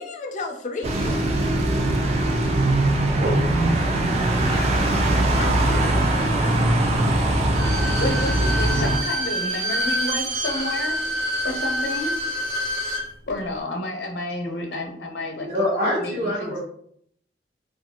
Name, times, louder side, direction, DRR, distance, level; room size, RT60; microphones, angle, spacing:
voice 1, 0.0-1.4 4.4-4.7 5.3-6.4 7.5-7.7, left 3 dB, 45° left, 3 dB, 0.4 m, -34 dB
sound 1, 0.8-9.0, right 1 dB, 40° right, 0.4 m, -21 dB
Bowed string instrument, 7.4-13.1 13.4-13.5, equal, 85° right, 1.1 m, -27 dB
voice 2, 7.7-12.4 13.3-15.5 15.9-16.6, left 2 dB, 80° left, 2 dB, 0.7 m, -31 dB
voice 3, 15.4-16.6, equal, 60° right, -9 dB, 0.9 m, -24 dB
2.6 x 2.5 x 2.8 m, 0.66 s
head